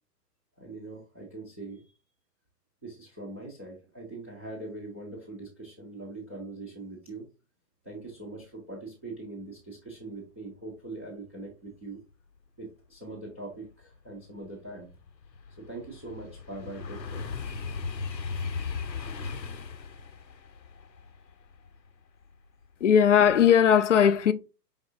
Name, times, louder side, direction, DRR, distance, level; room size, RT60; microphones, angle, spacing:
voice 1, 0.6-1.8 2.8-7.3 7.8-12.0 12.6-14.9 15.6-17.3, right 2 dB, 10° right, 0.4 m, -42 dB
sound 1, 13.3-13.4 13.8-22.9 23.3-23.7, left 4 dB, 85° left, 0.7 m, -38 dB
voice 2, 22.8-24.3, left 8 dB, 50° left, 0.5 m, -19 dB
5.2 x 3.5 x 2.6 m
figure-of-eight pair, 125°, 49 cm